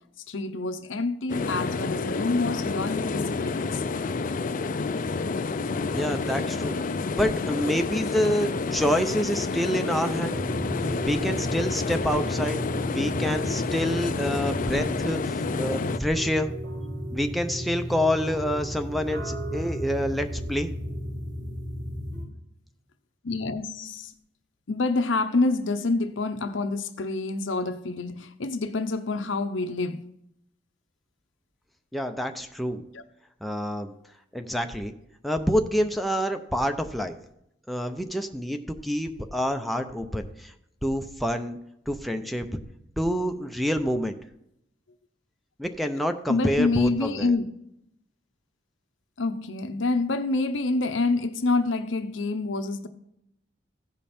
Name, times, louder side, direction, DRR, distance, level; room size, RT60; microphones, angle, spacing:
voice 1, 0.3-3.8 23.2-24.1 24.7-30.0 32.9-33.0 46.3-47.4 49.2-52.9, left 3 dB, 85° left, 0.8 m, -27 dB
sound 1, 1.3-16.0, left 4 dB, 45° left, 0.5 m, -29 dB
voice 2, 5.9-6.8 7.2-10.4 11.0-16.5 17.1-20.7 31.9-32.8 33.4-33.9 34.3-34.9 35.2-37.1 37.7-40.5 40.8-41.6 41.9-42.5 43.0-44.2 45.6-47.4, equal, ahead, 0.6 m, -27 dB
sound 2, 10.2-22.2, equal, 75° right, 4.2 m, -34 dB
15.5 x 5.3 x 4.3 m
head